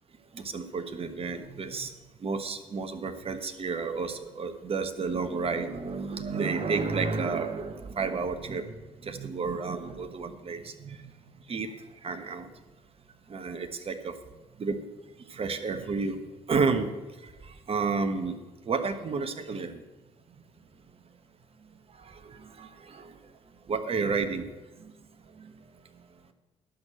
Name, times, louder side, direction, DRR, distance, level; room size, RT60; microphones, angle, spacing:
voice 1, 0.3-1.9 2.2-8.7 9.0-12.5 13.3-14.1 14.6-14.8 15.3-16.2 16.5-16.9 17.2-19.8 21.9-23.3 23.7-24.5 24.8-24.9 25.2-25.6 25.9-26.2, right 4 dB, 40° right, 9 dB, 1.2 m, -31 dB
11.0 x 6.3 x 7.7 m, 1.2 s
hypercardioid pair, 50°, 15 cm